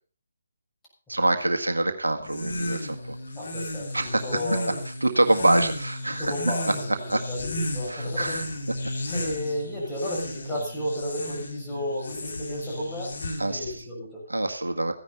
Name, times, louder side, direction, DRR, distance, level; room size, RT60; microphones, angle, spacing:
voice 1, 1.1-3.2 3.9-4.2 4.7-6.3 7.1-7.2 7.9-8.5 13.4-13.8 14.3-14.9, right 2 dB, 75° right, 6 dB, 1.7 m, -25 dB
sound 1, 2.2-13.7, left 1 dB, 55° left, 3.3 m, -33 dB
voice 2, 3.4-3.9 4.2-4.8 6.1-6.7 7.3-8.4 9.1-13.2 13.5-14.2, left 1 dB, 10° left, -5 dB, 7.0 m, -32 dB
15.5 x 10.5 x 5.6 m, 0.43 s
figure-of-eight pair, 145°, 0 cm